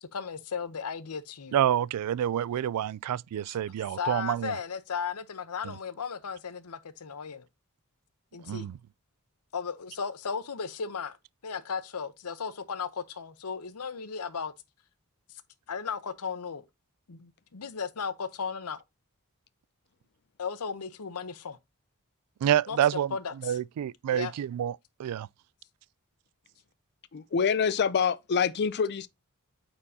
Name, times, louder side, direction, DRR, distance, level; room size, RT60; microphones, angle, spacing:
voice 1, 0.0-1.6 3.5-3.6 4.0-7.5 8.3-8.7 9.5-11.1 11.4-14.5 15.7-16.6 17.1-18.8 20.4-21.6 22.7-22.8 23.1-23.6 24.1-24.3, left 6 dB, 85° left, 0.8 m, -35 dB
voice 2, 1.5-4.6 5.6-5.7 8.4-8.8 22.4-23.1 23.4-25.3, right 10 dB, 90° right, 0.3 m, -28 dB
voice 3, 27.1-29.1, left 6 dB, 50° left, 0.5 m, -26 dB
8.7 x 4.4 x 2.7 m
head